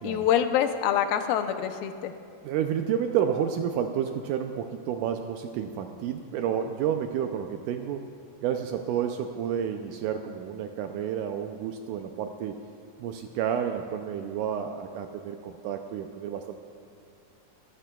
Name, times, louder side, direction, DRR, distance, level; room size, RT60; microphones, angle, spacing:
voice 1, 0.0-2.1, left 9 dB, 90° left, 8 dB, 2.5 m, -25 dB
voice 2, 2.4-8.1 8.4-12.6 13.0-16.6, right 8 dB, 80° right, 5 dB, 1.9 m, -30 dB
23.5 x 12.0 x 2.3 m, 2.5 s
omnidirectional pair, 4.0 m